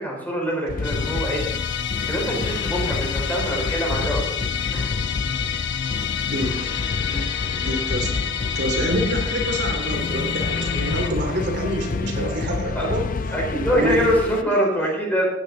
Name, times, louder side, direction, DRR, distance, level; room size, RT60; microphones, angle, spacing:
voice 1, 0.0-1.4 2.1-4.4 4.7-4.9 7.0-7.2 12.7-12.9 13.3-15.2, equal, 10° left, -2 dB, 4.2 m, -24 dB
sound 1, 0.7-14.4, left 4 dB, 45° left, 0.5 m, -28 dB
Musical instrument, 0.8-11.1, left 9 dB, 65° left, 1.1 m, -29 dB
voice 2, 7.5-13.1 13.7-14.0, equal, 60° right, 1 dB, 3.0 m, -27 dB
15.5 x 9.9 x 3.9 m, 0.90 s
head